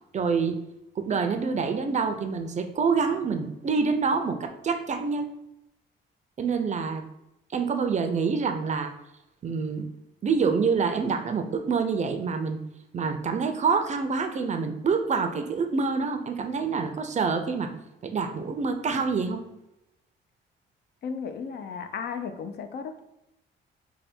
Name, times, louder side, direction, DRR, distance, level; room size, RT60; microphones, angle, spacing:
voice 1, 0.1-0.6 1.0-5.3 6.4-7.0 7.5-8.9 9.4-9.8 10.2-12.6 12.9-17.7 18.0-19.4, right 5 dB, 35° right, 7 dB, 0.4 m, -26 dB
voice 2, 21.0-23.0, left 6 dB, 55° left, 8 dB, 0.4 m, -35 dB
3.2 x 2.2 x 4.3 m, 0.87 s
cardioid pair, 90°, 20 cm